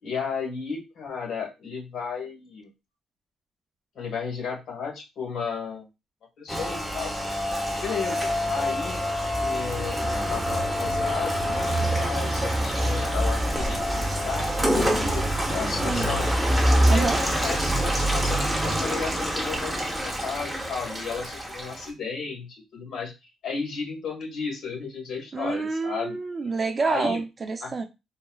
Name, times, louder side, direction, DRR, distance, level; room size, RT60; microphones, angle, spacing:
voice 1, 0.0-2.7 3.9-5.9 6.4-7.1 7.8-9.0 9.4-16.3 16.8-26.2 26.8-27.2 27.6-27.7, left 5 dB, 70° left, 1.4 m, -34 dB
Rain, 6.5-21.9, equal, 5° right, 0.8 m, -25 dB
voice 2, 16.8-17.2 25.3-27.8, right 4 dB, 35° right, 0.5 m, -28 dB
3.9 x 2.1 x 2.3 m
cardioid pair, 90°, 0 cm